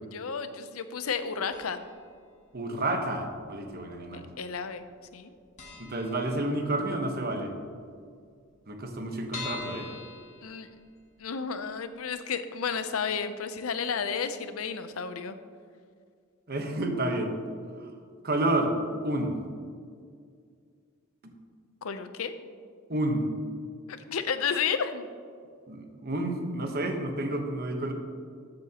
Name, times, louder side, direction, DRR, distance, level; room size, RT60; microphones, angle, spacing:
voice 1, 0.1-1.8 4.1-4.8 5.1-5.3 10.4-10.7 11.2-15.4 21.8-22.4 23.9-25.1, left 6 dB, 85° left, 10 dB, 0.6 m, -32 dB
sound 1, 1.5-2.1 2.3-2.4 3.3-4.0 4.3-4.5 4.8-4.9 5.2-5.3 5.6-6.9 7.3-7.4 7.6-7.7 7.9-8.0 8.5-11.2 11.6-11.7 12.1-12.2, left 4 dB, 35° left, 2.0 m, -43 dB
voice 2, 2.5-4.3 5.8-7.5 8.7-9.9 16.5-17.4 17.8-17.9 18.2-18.8 19.0-19.3 22.9-23.3 25.7-27.9, right 1 dB, 45° right, 4 dB, 1.1 m, -30 dB
13.5 x 7.8 x 2.9 m, 2.1 s
head